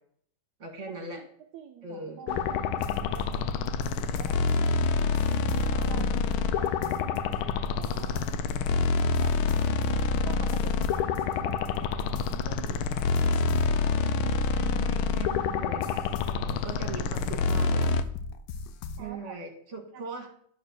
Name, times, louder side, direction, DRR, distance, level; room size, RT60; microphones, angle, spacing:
voice 1, 0.6-1.2 1.8-2.2 5.9-6.1 14.5-17.9 19.0-20.3, right 3 dB, 40° right, 3 dB, 2.0 m, -40 dB
voice 2, 1.5-3.7 4.0-4.4 5.4-6.1 6.3-8.3 9.2-9.3 10.2-13.1 17.1-17.7 19.0-19.4 19.9-20.1, right 8 dB, 65° right, 4 dB, 1.1 m, -47 dB
sound 1, 2.3-18.0, left 4 dB, 85° left, 1.4 m, -27 dB
sound 2, 2.8-15.4 15.8-19.1, left 6 dB, 70° left, 1.1 m, -41 dB
10.0 x 3.9 x 6.3 m, 0.63 s
omnidirectional pair, 2.2 m